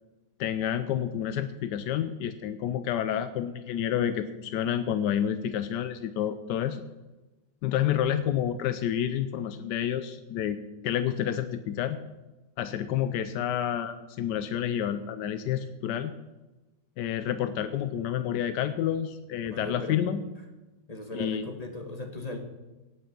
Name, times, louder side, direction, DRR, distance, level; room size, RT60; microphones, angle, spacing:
voice 1, 0.4-6.8 7.6-10.6 10.8-12.0 12.6-16.1 17.0-20.2 21.1-21.5, left 10 dB, 90° left, 10 dB, 1.3 m, -29 dB
voice 2, 19.5-20.0 20.9-22.4, left 2 dB, 25° left, 4 dB, 1.4 m, -37 dB
18.0 x 6.3 x 6.0 m, 1.1 s
omnidirectional pair, 1.8 m